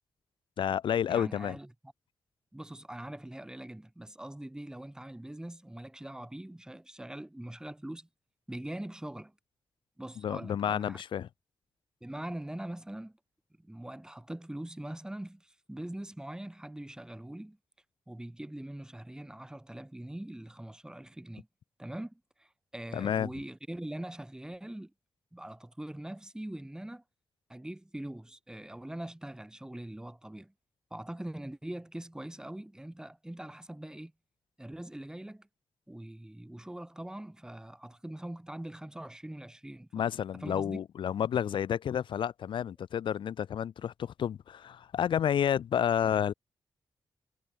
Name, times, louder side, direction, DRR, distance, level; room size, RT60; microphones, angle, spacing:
voice 1, 0.6-1.6 10.2-11.3 22.9-23.3 39.9-46.3, left 9 dB, 85° left, 2.0 m, -30 dB
voice 2, 1.1-1.7 2.5-8.1 8.5-9.3 10.0-11.0 12.0-13.2 13.6-17.6 18.1-21.5 21.8-24.9 25.3-27.0 27.5-30.5 30.9-34.1 34.6-35.5 35.9-40.8, right 1 dB, 10° right, 7.4 m, -42 dB
wide cardioid pair, 115°, 8 cm